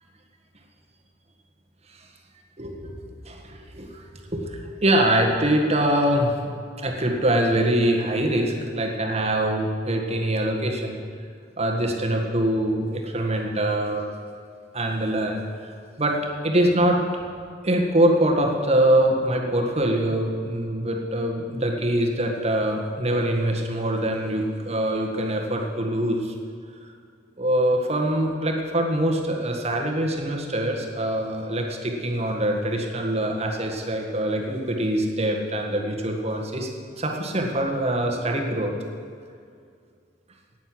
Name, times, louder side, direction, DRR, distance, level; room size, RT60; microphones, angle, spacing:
voice 1, 2.6-2.9 3.2-6.3 6.8-11.0 11.6-14.0 14.7-17.0 17.6-26.3 27.4-36.7 37.0-38.7, right 1 dB, 35° right, 1 dB, 1.7 m, -24 dB
11.0 x 9.3 x 7.8 m, 2.3 s
head